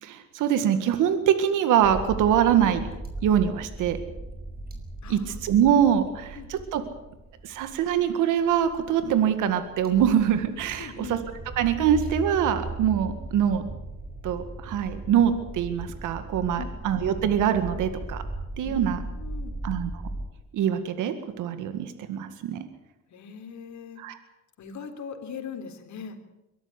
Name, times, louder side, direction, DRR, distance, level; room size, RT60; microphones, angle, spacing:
voice 1, 0.0-2.9 3.2-4.0 5.1-6.8 7.4-11.2 11.6-13.6 14.2-18.2 18.6-19.0 19.6-20.0 20.5-22.6 24.0-24.2, right 9 dB, 90° right, 10 dB, 1.9 m, -24 dB
sound 1, 1.8-20.3, right 2 dB, 30° right, 5.5 m, -38 dB
voice 2, 5.0-5.4 6.3-6.5 10.8-11.2 16.6-16.9 18.6-18.8 19.2-19.6 23.1-24.0 24.6-26.2, left 6 dB, 70° left, 6 dB, 3.6 m, -40 dB
23.0 x 13.5 x 9.9 m, 0.98 s
cardioid pair, 90°, 30 cm